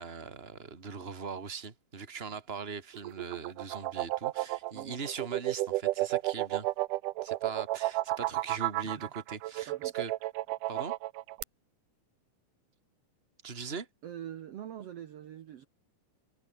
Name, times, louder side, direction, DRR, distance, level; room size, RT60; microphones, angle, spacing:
voice 1, 0.0-6.7 7.2-10.1 10.7-11.0 13.4-13.9, right 5 dB, 20° right, 2.3 m, -41 dB
sound 1, 2.9-11.4, right 17 dB, 90° right, 2.3 m, -32 dB
voice 2, 14.0-15.7, right 10 dB, 60° right, 2.0 m, -44 dB
omnidirectional pair, 3.7 m